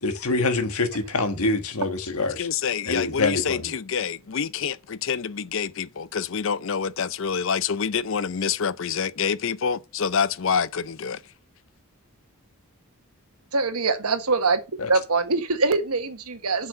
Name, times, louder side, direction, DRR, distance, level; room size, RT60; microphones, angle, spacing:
voice 1, 0.0-2.5 2.8-3.7 14.8-14.9, left 3 dB, 80° left, 1.5 m, -25 dB
voice 2, 2.4-11.2, left 6 dB, 60° left, 0.5 m, -27 dB
voice 3, 13.5-14.6 14.9-16.7, right 3 dB, 80° right, 1.4 m, -23 dB
7.7 x 6.2 x 5.6 m
head